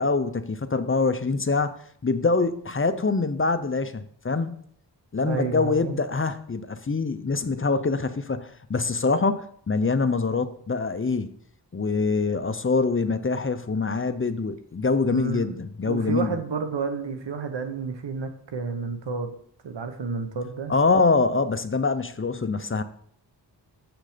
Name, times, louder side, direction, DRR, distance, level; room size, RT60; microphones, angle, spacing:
voice 1, 0.0-1.8 2.0-4.6 5.1-11.3 11.7-16.4 20.7-22.8, left 4 dB, 30° left, 0.6 m, -24 dB
voice 2, 5.2-6.0 15.1-19.3 19.6-20.7, right 4 dB, 80° right, 1.1 m, -31 dB
7.6 x 6.1 x 5.1 m
wide cardioid pair, 65°, 42 cm